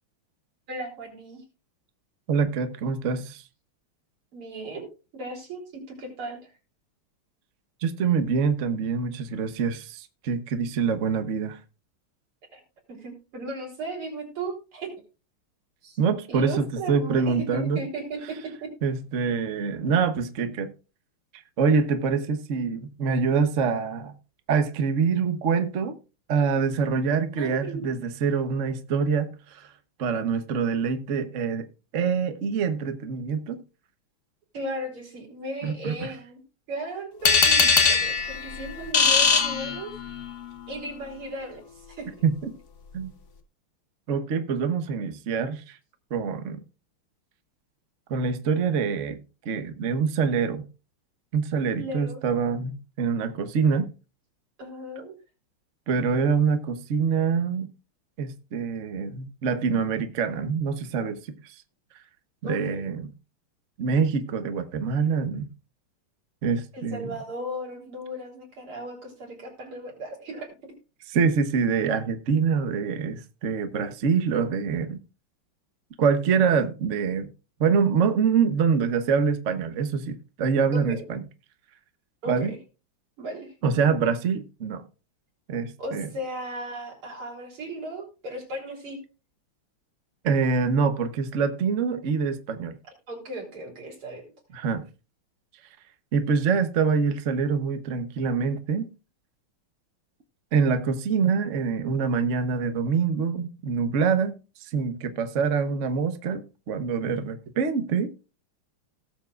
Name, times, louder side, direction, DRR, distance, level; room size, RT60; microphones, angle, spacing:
voice 1, 0.7-1.4 4.3-4.9 5.1-5.7 6.0-6.4 12.5-12.6 12.9-14.9 15.8-16.0 16.3-18.5 27.3-27.9 34.5-36.4 36.7-39.9 40.7-42.1 51.8-52.2 54.6-55.2 62.4-62.8 66.7-70.5 80.7-81.0 82.2-82.6 83.2-83.5 85.8-89.0 93.1-94.2, right 1 dB, 85° right, 4.6 m, -36 dB
voice 2, 2.3-3.4 7.8-11.6 16.0-17.8 18.8-20.7 21.6-24.1 24.5-26.0 26.3-29.7 30.0-31.6 31.9-33.6 35.6-36.1 42.2-42.5 42.9-43.1 44.1-45.8 46.1-46.6 48.1-49.2 49.4-50.6 51.3-53.9 55.9-57.7 58.2-61.2 61.4-61.5 62.4-63.1 63.8-65.5 66.4-67.1 71.1-75.0 76.0-77.3 77.6-81.2 82.3-82.5 83.6-84.8 85.5-86.1 90.2-92.8 94.5-94.8 96.1-98.9 100.5-104.3 104.6-108.1, right 5 dB, 45° right, 1.1 m, -25 dB
sound 1, 37.2-40.3, left 5 dB, 45° left, 1.1 m, -21 dB
18.0 x 7.2 x 2.4 m
omnidirectional pair, 2.3 m